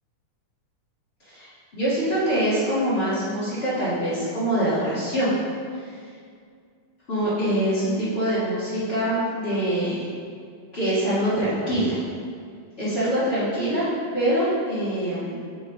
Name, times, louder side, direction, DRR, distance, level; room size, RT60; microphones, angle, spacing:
voice 1, 1.2-5.3 7.1-10.1 10.7-12.0 12.8-13.9 14.1-15.4, right 1 dB, 40° left, -10 dB, 0.8 m, -24 dB
7.3 x 4.1 x 3.7 m, 2.2 s
omnidirectional pair, 3.8 m